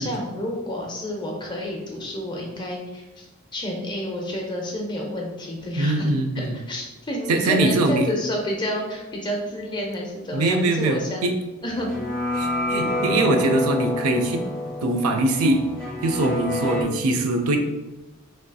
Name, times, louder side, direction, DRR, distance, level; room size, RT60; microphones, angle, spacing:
voice 1, 0.0-3.3 3.5-6.1 6.7-11.2 11.6-11.9 16.8-16.9, left 1 dB, 20° left, -1 dB, 0.4 m, -29 dB
voice 2, 5.8-6.6 7.3-8.1 10.3-11.3 12.4-14.4 14.8-15.6 16.0-17.6, right 2 dB, 80° right, 5 dB, 0.4 m, -22 dB
sound 1, 11.7-16.8, left 1 dB, 5° left, 1.1 m, -28 dB
3.2 x 2.6 x 2.2 m, 1.0 s
head